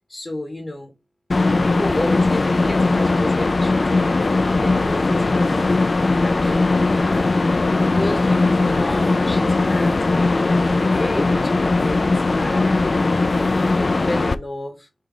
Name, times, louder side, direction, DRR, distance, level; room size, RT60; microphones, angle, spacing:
voice 1, 0.1-0.9 1.3-5.7 6.2-7.6 7.9-13.1 13.6-14.9, left 1 dB, 25° left, 0.9 m, -32 dB
sound 1, 1.3-14.4, left 3 dB, 45° left, 0.4 m, -19 dB
3.7 x 2.7 x 4.7 m
cardioid pair, 60°, 0 cm